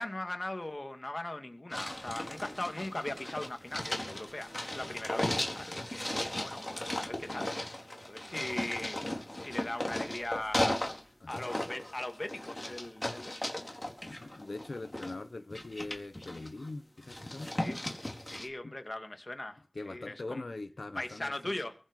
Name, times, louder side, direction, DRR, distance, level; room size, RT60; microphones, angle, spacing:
voice 1, 0.0-7.5 8.0-9.0 9.3-10.8 11.3-13.8 17.6-17.8 18.2-19.6 19.8-20.4 21.0-21.7, left 1 dB, 50° left, 2.6 m, -39 dB
sound 1, 1.7-11.0 11.3-15.1 15.5-16.7 17.0-18.5, left 1 dB, 30° left, 4.1 m, -36 dB
voice 2, 14.1-17.5 18.6-18.7 19.7-21.5, left 2 dB, 90° left, 1.0 m, -42 dB
23.0 x 7.9 x 5.5 m
wide cardioid pair, 40°, 0 cm